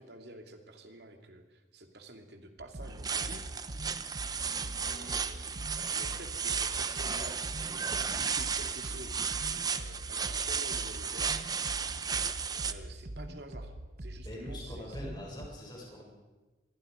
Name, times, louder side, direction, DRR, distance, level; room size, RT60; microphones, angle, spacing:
voice 1, 0.0-3.4 4.8-5.5 5.9-9.2 9.7-11.3 12.7-13.7 14.0-15.0, right 1 dB, 70° right, 5 dB, 2.8 m, -49 dB
sound 1, 2.6-15.5, right 1 dB, 50° right, 1.0 m, -43 dB
sound 2, 2.8-12.7, right 6 dB, 20° right, 0.8 m, -34 dB
voice 2, 14.2-16.0, left 1 dB, 25° left, -2 dB, 7.4 m, -43 dB
26.0 x 22.0 x 5.2 m, 1.2 s
head